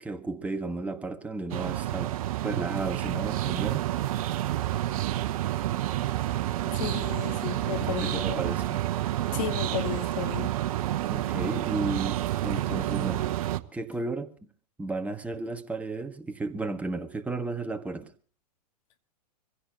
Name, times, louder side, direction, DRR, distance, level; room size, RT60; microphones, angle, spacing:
voice 1, 0.0-2.2 2.4-3.9 7.8-8.8 11.1-13.3 13.7-14.3 14.8-18.1, right 3 dB, 5° right, 1.4 m, -33 dB
sound 1, 1.5-13.6, right 14 dB, 60° right, 1.0 m, -29 dB
voice 2, 6.7-8.5 9.3-10.5, left 11 dB, 50° left, 1.7 m, -34 dB
25.0 x 16.0 x 2.9 m
hypercardioid pair, 120°, 21 cm